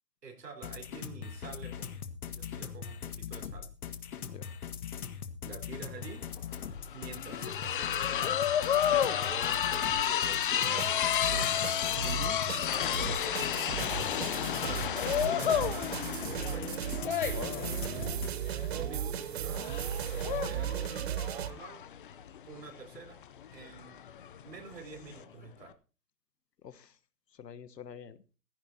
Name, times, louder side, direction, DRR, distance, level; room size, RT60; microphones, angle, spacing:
voice 1, 0.2-2.0 2.3-3.7 5.4-6.3 6.9-11.7 12.7-13.9 14.3-15.0 15.2-16.7 18.6-21.9 22.5-23.2 23.5-24.0 24.4-25.8, right 5 dB, 80° right, 4 dB, 4.3 m, -47 dB
sound 1, 0.6-18.3, left 7 dB, 60° left, 1.8 m, -41 dB
sound 2, 6.0-6.1 6.4-25.2, left 9 dB, 35° left, 0.6 m, -32 dB
sound 3, 10.6-21.5, right 9 dB, 40° right, 0.9 m, -37 dB
voice 2, 12.0-12.4 14.5-14.9 17.3-17.7 26.6-26.9 27.4-28.2, left 8 dB, 80° left, 15 dB, 1.3 m, -45 dB
15.5 x 15.5 x 2.8 m, 0.35 s
hypercardioid pair, 150°, 48 cm